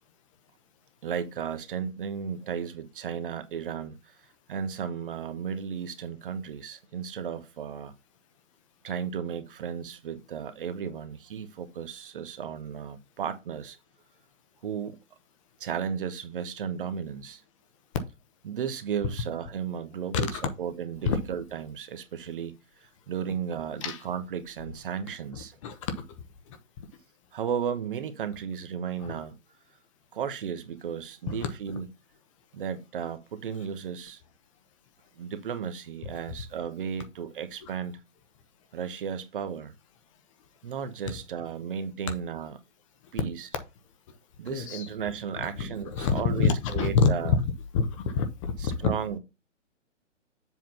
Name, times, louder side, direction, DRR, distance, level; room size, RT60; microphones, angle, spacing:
voice 1, 1.0-4.1 4.5-7.9 8.8-13.8 14.6-15.0 15.6-17.4 18.4-22.5 22.8-25.6 27.3-29.3 30.1-31.9 32.5-34.2 35.2-38.0 38.7-39.7 40.6-42.6 43.1-43.5 44.4-47.4 48.6-49.2, right 7 dB, 45° right, 1.1 m, -34 dB
voice 2, 25.6-26.0 29.0-29.2 44.5-44.9 45.6-47.3 47.7-48.9, left 5 dB, 25° left, 0.9 m, -26 dB
7.5 x 3.8 x 5.8 m
figure-of-eight pair, 135°, 38 cm